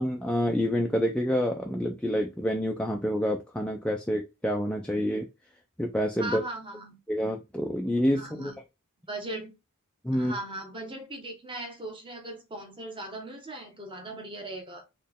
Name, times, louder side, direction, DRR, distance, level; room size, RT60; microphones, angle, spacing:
voice 1, 0.0-5.3 5.8-6.4 7.1-8.5 10.0-10.3, equal, 5° left, 0.5 m, -27 dB
voice 2, 6.2-7.0 8.1-8.6 9.1-9.5 10.1-14.9, right 1 dB, 25° right, 1.3 m, -38 dB
4.4 x 3.2 x 3.6 m
head